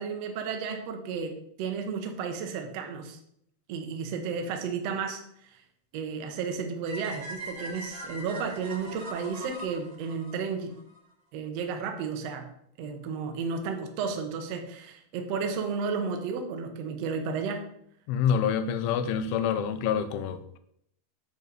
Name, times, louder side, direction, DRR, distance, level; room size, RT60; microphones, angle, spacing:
voice 1, 0.0-3.2 3.7-5.2 5.9-10.7 11.3-12.5 12.8-17.6, right 5 dB, 85° right, 4 dB, 1.4 m, -33 dB
sound 1, 6.8-11.0, right 1 dB, 45° right, 2.7 m, -41 dB
voice 2, 18.1-20.6, left 7 dB, 85° left, 10 dB, 2.5 m, -27 dB
8.5 x 4.0 x 6.7 m, 0.71 s
omnidirectional pair, 4.4 m